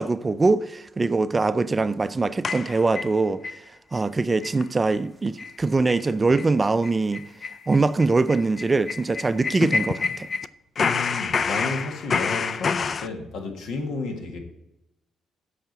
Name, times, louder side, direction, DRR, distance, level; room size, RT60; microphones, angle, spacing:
voice 1, 0.0-3.6 3.9-7.3 7.7-10.3, right 3 dB, 25° right, 0.4 m, -23 dB
sound 1, 2.4-3.6 4.0-4.1 4.4-4.6 4.9-5.0 5.4-5.6 5.9-6.1 6.3-6.5 6.8-10.5 10.8-13.1, left 5 dB, 45° left, 0.4 m, -27 dB
voice 2, 10.8-14.4, left 3 dB, 80° left, 1.8 m, -32 dB
8.0 x 5.0 x 7.4 m
cardioid pair, 90°, 0 cm